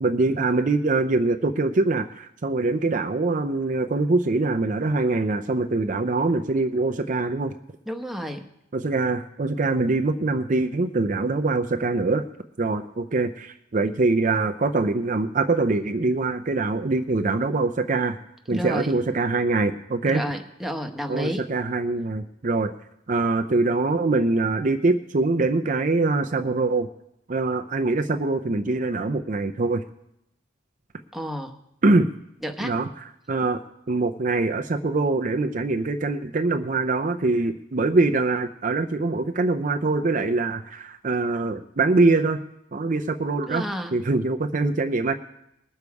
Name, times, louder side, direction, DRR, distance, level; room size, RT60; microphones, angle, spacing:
voice 1, 0.0-7.6 8.7-12.2 12.6-18.2 18.5-20.2 21.1-22.7 23.1-26.9 27.3-29.8 31.8-32.1 32.6-32.9 33.3-33.6 33.9-42.4 42.7-43.6 43.9-45.1, right 3 dB, 40° right, 7 dB, 0.5 m, -23 dB
voice 2, 7.9-8.5 18.5-18.9 20.1-21.5 31.1-31.6 32.4-32.7 43.5-43.9, equal, ahead, 3 dB, 1.0 m, -31 dB
20.5 x 6.9 x 4.7 m, 0.81 s
head